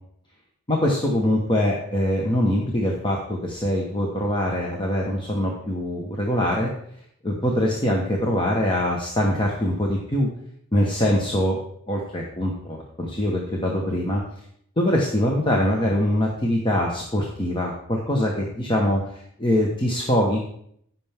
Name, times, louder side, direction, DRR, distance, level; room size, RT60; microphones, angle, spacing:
voice 1, 0.7-6.7 7.2-10.3 10.7-11.6 11.9-14.2 14.8-20.4, left 1 dB, 20° left, -1 dB, 1.2 m, -23 dB
15.0 x 5.9 x 3.6 m, 0.68 s
head